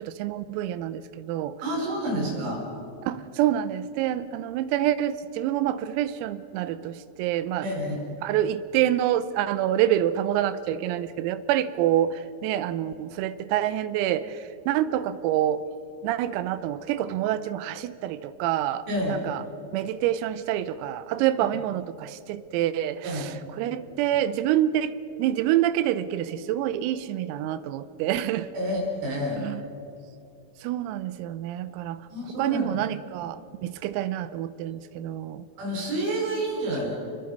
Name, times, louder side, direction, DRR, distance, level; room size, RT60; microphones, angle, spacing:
voice 1, 0.0-1.6 2.1-2.3 3.0-7.7 8.2-15.7 16.0-19.4 19.7-24.9 25.2-28.5 29.4-29.6 30.6-32.0 32.4-35.5, right 12 dB, 85° right, 14 dB, 3.5 m, -27 dB
voice 2, 1.6-2.6 7.6-8.0 18.9-19.1 23.0-23.2 28.5-29.4 32.1-32.8 35.6-36.9, equal, 60° right, -1 dB, 7.2 m, -29 dB
29.0 x 21.5 x 5.4 m, 2.8 s
omnidirectional pair, 6.0 m